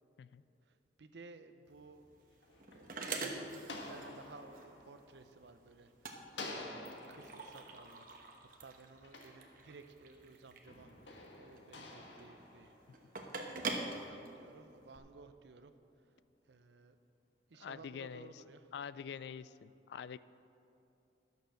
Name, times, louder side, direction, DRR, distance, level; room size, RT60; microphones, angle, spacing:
voice 1, 0.7-2.0 2.7-2.9 3.2-12.8 13.4-15.7 16.4-17.0 17.5-18.7, right 3 dB, 75° right, 10 dB, 0.6 m, -57 dB
sound 1, 1.7-15.0, right 3 dB, 50° right, 1.0 m, -45 dB
sound 2, 2.1-5.9 6.3-10.1 10.7-13.3, left 2 dB, 90° left, 1.3 m, -51 dB
voice 2, 17.6-18.4 18.7-20.2, left 7 dB, 70° left, 17 dB, 0.3 m, -45 dB
12.0 x 6.7 x 6.3 m, 2.8 s
head